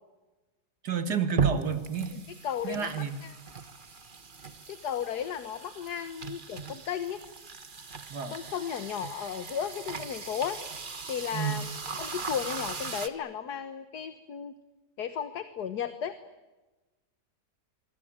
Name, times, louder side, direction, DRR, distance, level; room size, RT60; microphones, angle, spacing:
voice 1, 0.8-2.2 2.6-3.1 8.1-8.3 11.3-11.6, right 7 dB, 65° right, 9 dB, 2.5 m, -30 dB
sound 1, 1.4-13.1, right 6 dB, 30° right, 1.4 m, -37 dB
voice 2, 2.4-2.9 3.2-3.3 4.7-7.2 8.3-10.6 11.1-11.7 12.0-14.5 15.0-16.2, left 8 dB, 65° left, 10 dB, 1.7 m, -34 dB
25.5 x 24.0 x 9.0 m, 1.1 s
omnidirectional pair, 1.9 m